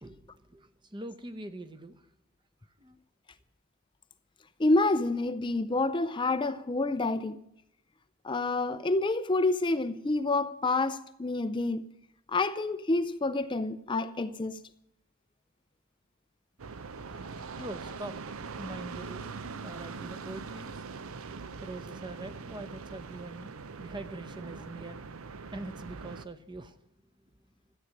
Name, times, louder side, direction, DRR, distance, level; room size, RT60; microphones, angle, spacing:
voice 1, 0.0-2.1 2.8-3.0 17.0-21.3 21.6-25.2 25.5-26.8, right 2 dB, 20° right, 0.8 m, -44 dB
voice 2, 4.6-7.4 8.2-11.9 12.3-14.6, left 2 dB, 20° left, 0.5 m, -28 dB
sound 1, 16.6-26.3, right 4 dB, 70° right, 0.6 m, -42 dB
13.5 x 8.6 x 9.7 m
head